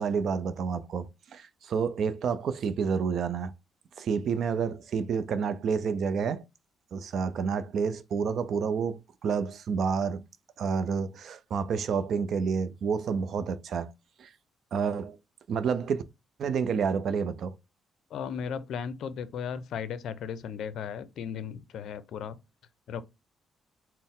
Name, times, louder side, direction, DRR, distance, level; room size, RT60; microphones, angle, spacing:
voice 1, 0.0-3.5 4.0-6.4 6.9-10.2 10.6-13.9 14.2-14.3 14.7-15.2 15.5-16.0 16.4-17.5, right 6 dB, 65° right, 0.5 m, -29 dB
voice 2, 18.1-22.4 22.9-23.0, left 7 dB, 75° left, 0.4 m, -36 dB
4.2 x 2.0 x 3.6 m
cardioid pair, 90°, 0 cm